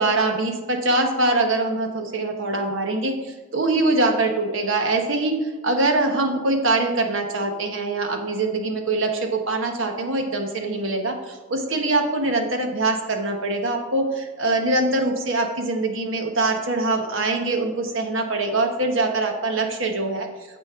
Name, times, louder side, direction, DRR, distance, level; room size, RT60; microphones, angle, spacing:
voice 1, 0.0-20.3, right 2 dB, 60° right, 4 dB, 1.2 m, -23 dB
9.3 x 7.4 x 3.7 m, 1.3 s
head